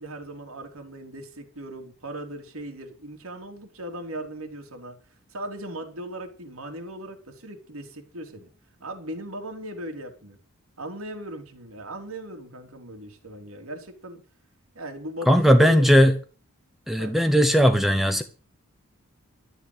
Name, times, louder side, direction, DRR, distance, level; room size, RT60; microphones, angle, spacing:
voice 1, 0.0-5.0 5.3-8.5 8.8-10.4 10.8-14.2 14.8-15.9 17.0-17.2, right 1 dB, 85° right, 3.6 m, -38 dB
voice 2, 15.3-16.1 16.9-18.2, equal, ahead, 0.8 m, -17 dB
13.5 x 8.3 x 8.2 m
head